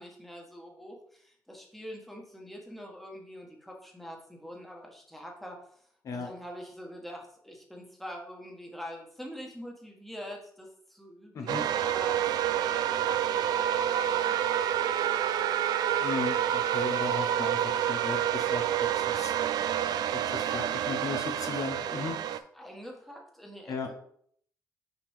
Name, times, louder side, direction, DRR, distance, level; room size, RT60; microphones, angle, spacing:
voice 1, 0.0-5.8 6.1-12.3 12.5-15.4 20.4-23.9, equal, ahead, 0 dB, 1.4 m, -45 dB
sound 1, 11.5-22.4, right 10 dB, 85° right, 0.4 m, -28 dB
voice 2, 16.0-19.3 20.3-22.2 23.7-23.9, left 4 dB, 55° left, 5 dB, 0.9 m, -36 dB
5.9 x 5.1 x 3.6 m, 0.63 s
cardioid pair, 130°, 7 cm